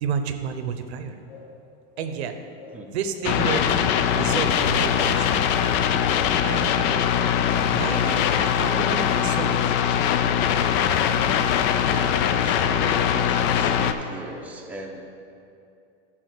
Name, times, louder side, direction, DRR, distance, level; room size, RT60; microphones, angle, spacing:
voice 1, 0.0-1.2 2.0-2.4 2.9-5.5 6.4-7.1 7.6-9.7, right 6 dB, 80° right, 8 dB, 0.8 m, -31 dB
sound 1, 1.3-1.6 1.9-2.2 2.6-2.9 3.2-4.4 4.7-4.8 5.1-5.7 6.0-6.1, left 4 dB, 75° left, 2.1 m, -46 dB
sound 2, 3.2-13.9, left 9 dB, 40° left, 0.4 m, -22 dB
voice 2, 11.9-15.0, right 1 dB, 5° right, -1 dB, 0.7 m, -38 dB
10.5 x 3.8 x 6.5 m, 2.6 s
supercardioid pair, 130°, 32 cm